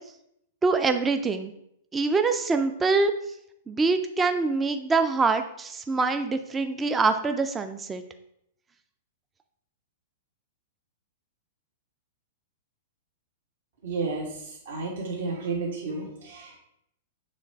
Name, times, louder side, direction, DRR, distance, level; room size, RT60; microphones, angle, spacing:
voice 1, 0.6-1.5 1.9-3.1 3.7-8.0, right 4 dB, 10° right, 8 dB, 0.3 m, -24 dB
voice 2, 13.8-16.6, right 3 dB, 70° right, -3 dB, 1.4 m, -32 dB
7.0 x 3.2 x 4.5 m, 0.76 s
hypercardioid pair, 155°, 0 cm